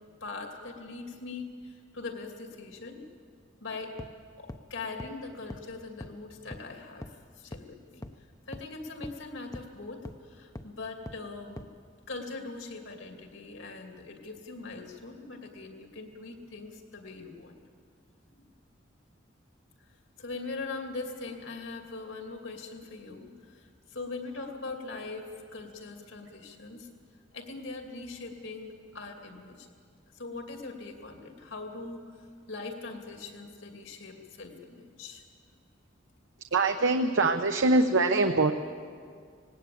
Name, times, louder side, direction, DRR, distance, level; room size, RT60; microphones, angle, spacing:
voice 1, 0.2-3.0 3.6-4.0 4.4-8.0 8.5-11.6 12.1-17.6 18.3-18.5 20.2-26.9 27.3-29.7 30.1-35.2, left 3 dB, 75° left, 3 dB, 2.6 m, -41 dB
sound 1, 4.0-4.1 4.5-4.6 5.0-5.1 5.5-5.6 6.0-6.1 6.5-6.6 7.0-7.1 7.5-7.6 8.0-8.1 8.5-8.6 9.0-9.1 9.5-9.6 10.0-10.1 10.6-10.7 11.1-11.2 11.6-11.7, left 1 dB, 15° left, 0.6 m, -40 dB
voice 2, 36.5-38.5, right 3 dB, 75° right, 6 dB, 0.8 m, -23 dB
19.5 x 17.5 x 8.5 m, 2.1 s
head